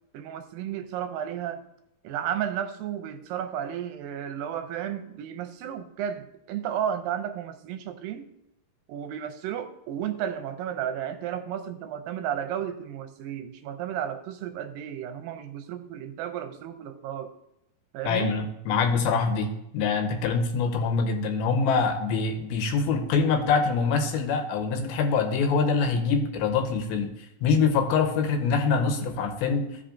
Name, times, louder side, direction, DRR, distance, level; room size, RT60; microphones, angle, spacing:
voice 1, 0.1-1.6 2.0-8.3 8.9-17.3 17.9-18.4, right 9 dB, 80° right, 8 dB, 2.2 m, -33 dB
voice 2, 18.1-19.5 19.7-27.1 27.4-29.7, left 5 dB, 85° left, 5 dB, 2.8 m, -24 dB
15.0 x 5.3 x 2.5 m, 0.84 s
omnidirectional pair, 4.3 m